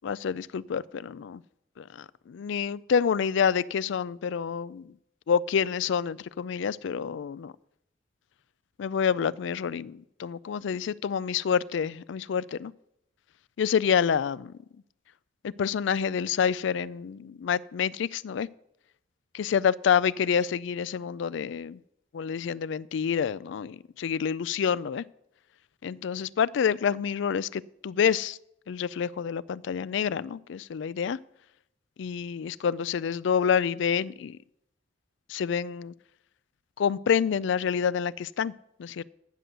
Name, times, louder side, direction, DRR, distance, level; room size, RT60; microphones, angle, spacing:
voice 1, 0.0-1.4 1.8-4.9 5.3-7.5 8.8-12.7 13.6-14.5 15.4-18.5 19.3-21.8 22.1-25.0 25.8-28.4 28.7-31.2 32.0-34.4 35.3-35.9 36.8-38.5 38.8-39.0, left 7 dB, 70° left, 19 dB, 0.3 m, -28 dB
9.3 x 6.6 x 7.7 m, 0.79 s
head